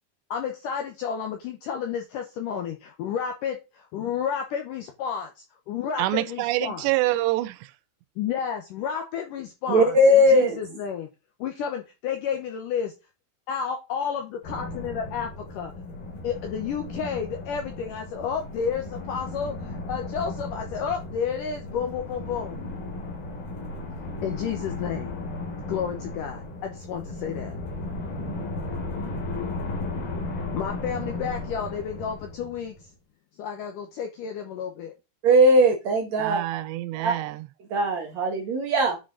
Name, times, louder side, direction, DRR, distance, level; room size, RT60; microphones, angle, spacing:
voice 1, 0.3-6.9 8.2-11.1 11.4-12.9 13.5-15.7 16.2-22.6 24.2-25.1 25.7-27.5 30.4-32.8 33.4-34.9, left 7 dB, 75° left, 2.0 m, -31 dB
voice 2, 6.0-7.7 36.2-37.5, right 17 dB, 90° right, 2.8 m, -26 dB
voice 3, 9.7-10.6 35.2-36.4 37.0-37.1 37.7-39.0, equal, 65° right, 1.9 m, -19 dB
sound 1, 14.4-32.9, left 2 dB, 60° left, 4.5 m, -35 dB
10.0 x 5.1 x 3.8 m
omnidirectional pair, 4.9 m